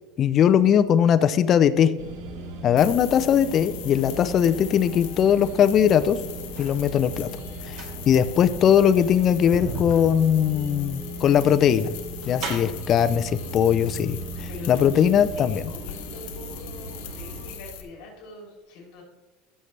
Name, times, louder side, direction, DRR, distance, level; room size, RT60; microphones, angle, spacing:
voice 1, 0.2-1.9 2.6-6.2 6.6-7.3 7.7-7.8 8.1-11.9 12.3-15.6, left 9 dB, 35° left, 12 dB, 0.4 m, -20 dB
sound 1, 2.0-17.5, right 2 dB, 85° right, 1.8 m, -38 dB
sound 2, 2.8-17.8, left 9 dB, 80° left, 1.3 m, -41 dB
sound 3, 5.8-6.8 7.5-12.9 13.9-14.0 14.3-15.2 15.4-15.5, right 3 dB, 55° right, 3.0 m, -38 dB
voice 2, 14.5-19.0, left 2 dB, 65° left, -2 dB, 3.2 m, -44 dB
15.0 x 6.6 x 3.3 m, 1.2 s
supercardioid pair, 150°, 0 cm